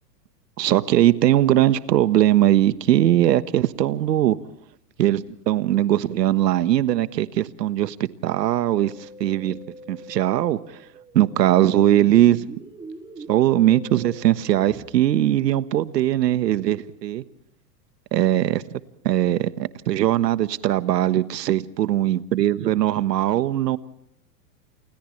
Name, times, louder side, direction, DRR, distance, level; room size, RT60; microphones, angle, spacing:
voice 1, 0.6-4.4 5.0-7.9 8.2-8.9 9.2-9.6 9.9-10.6 11.1-12.4 13.3-17.2 18.1-18.6 19.0-23.8, right 13 dB, 85° right, 13 dB, 1.4 m, -20 dB
Musical instrument, 8.8-14.8, right 1 dB, 10° right, 3.8 m, -43 dB
28.5 x 28.5 x 3.3 m, 0.72 s
hypercardioid pair, 145°, 48 cm